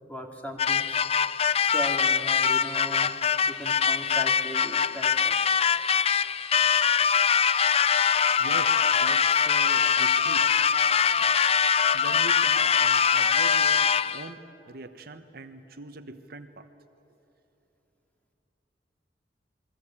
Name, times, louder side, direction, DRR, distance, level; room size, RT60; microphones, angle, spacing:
voice 1, 0.1-1.2 1.6-3.1 3.5-5.4, right 1 dB, 10° left, 3 dB, 2.6 m, -38 dB
sound 1, 0.6-14.3, left 7 dB, 35° left, 0.5 m, -23 dB
Wind instrument woodwind instrument, 8.3-12.5, left 1 dB, 85° left, 3.4 m, -51 dB
voice 2, 8.4-10.5 11.2-11.3 11.9-16.7, right 2 dB, 60° right, 8 dB, 1.2 m, -42 dB
29.0 x 22.0 x 8.8 m, 2.9 s
head